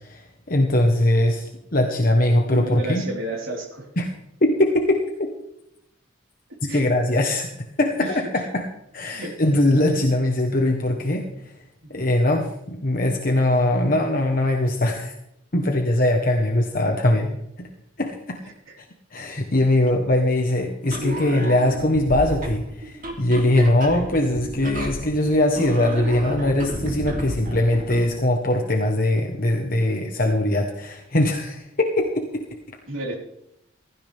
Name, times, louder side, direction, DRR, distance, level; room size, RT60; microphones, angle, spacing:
voice 1, 0.0-1.4 1.7-3.1 4.0-4.1 4.4-5.0 6.6-7.5 7.8-8.7 8.9-11.5 11.9-15.1 15.5-17.7 18.0-18.4 19.1-32.4, left 1 dB, 45° left, 3 dB, 1.3 m, -21 dB
voice 2, 2.5-3.8 6.7-6.8 8.0-8.1 9.1-9.3 32.9-33.1, right 2 dB, 85° right, -3 dB, 4.5 m, -31 dB
sound 1, 20.8-28.2, right 1 dB, 45° right, 3.2 m, -32 dB
16.0 x 15.5 x 3.6 m, 0.81 s
head